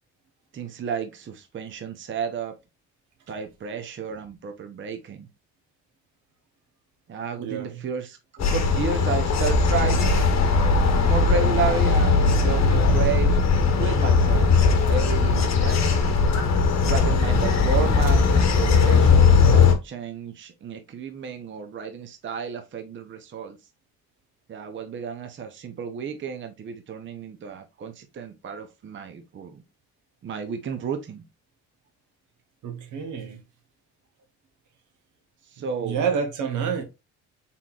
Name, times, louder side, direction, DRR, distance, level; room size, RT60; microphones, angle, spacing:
voice 1, 0.5-2.5 3.3-5.3 7.1-10.5 11.0-13.5 13.8-16.0 16.9-23.6 24.5-29.6 30.2-31.2 35.5-36.0, right 5 dB, 40° right, 0.6 m, -32 dB
voice 2, 7.4-7.8 32.6-33.4 35.8-36.8, right 6 dB, 75° right, 1.0 m, -28 dB
sound 1, 8.4-19.7, left 4 dB, 60° left, 1.0 m, -19 dB
4.2 x 3.7 x 2.4 m
cardioid pair, 90°, 30 cm